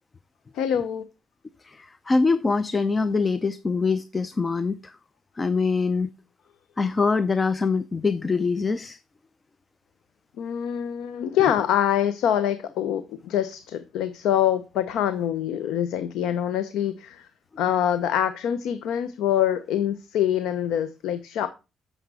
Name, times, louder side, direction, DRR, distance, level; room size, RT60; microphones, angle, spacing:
voice 1, 0.5-1.1 10.4-17.3 17.6-21.5, left 10 dB, 90° left, 0.7 m, -25 dB
voice 2, 1.8-4.8 5.4-6.1 6.8-9.0, left 4 dB, 30° left, 0.5 m, -23 dB
9.1 x 6.6 x 6.2 m
cardioid pair, 90°, 0 cm